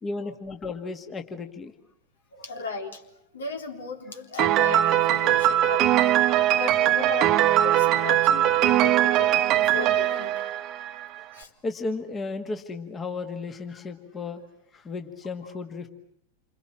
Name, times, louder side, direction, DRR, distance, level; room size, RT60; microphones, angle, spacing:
voice 1, 0.0-1.8 10.9-11.0 11.6-14.4 14.7-15.9, left 3 dB, 20° left, 6 dB, 1.9 m, -34 dB
voice 2, 2.3-3.0 3.3-6.2 6.6-7.4 7.6-10.6 11.3-11.5 14.4-14.5, left 4 dB, 70° left, 4 dB, 3.5 m, -36 dB
Piano, 4.4-11.2, right 13 dB, 35° right, 1.1 m, -21 dB
29.0 x 26.5 x 7.6 m, 0.69 s
figure-of-eight pair, 90°, 0 cm